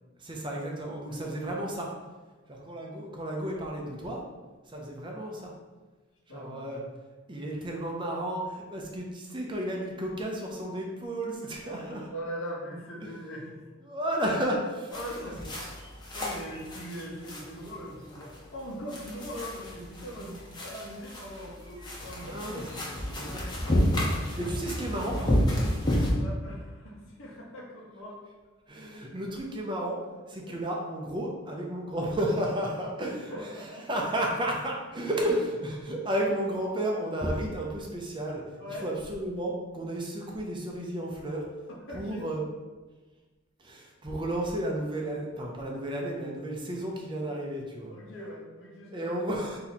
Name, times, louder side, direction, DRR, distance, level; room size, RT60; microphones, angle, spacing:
voice 1, 0.2-1.9 2.5-4.2 4.7-5.5 6.3-6.8 7.3-12.0 13.0-13.1 13.9-14.9 15.2-15.3 22.2-22.6 23.2-25.5 28.7-30.0 30.3-38.4 38.7-41.4 41.9-42.4 43.6-47.9 48.9-49.6, right 1 dB, 25° right, -1 dB, 0.6 m, -33 dB
voice 2, 1.1-1.6 6.3-6.7 11.6-13.6 14.9-15.4 16.1-22.8 26.0-28.2 30.5-30.6 33.3-34.1 38.6-38.9 41.9-42.3 47.9-49.1, equal, 65° left, -3 dB, 1.1 m, -41 dB
sound 1, 14.9-26.1, equal, 20° left, 0.8 m, -31 dB
4.2 x 2.8 x 4.1 m, 1.3 s
head